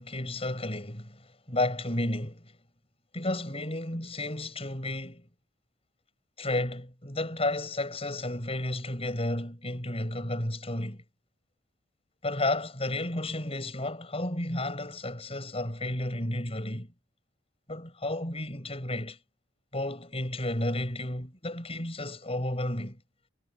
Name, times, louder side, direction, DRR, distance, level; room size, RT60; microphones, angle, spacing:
voice 1, 0.0-2.5 3.1-5.3 6.4-11.0 12.2-16.9 17.7-19.2 19.7-23.0, left 1 dB, 30° left, 7.2 m, -32 dB
head